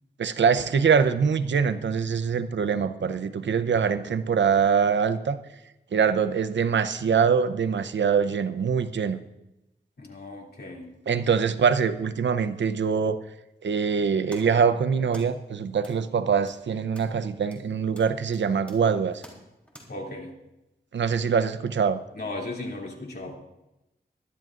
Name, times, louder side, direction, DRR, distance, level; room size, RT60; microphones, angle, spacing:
voice 1, 0.2-5.4 5.9-9.2 11.1-13.2 13.6-19.2 20.9-22.0, right 6 dB, 85° right, 11 dB, 0.7 m, -23 dB
voice 2, 10.0-10.9 19.9-20.3 22.1-23.4, left 2 dB, 60° left, -1 dB, 2.8 m, -36 dB
sound 1, 14.3-19.8, equal, 5° left, 3.4 m, -52 dB
21.5 x 12.0 x 2.5 m, 0.93 s
wide cardioid pair, 90°, 18 cm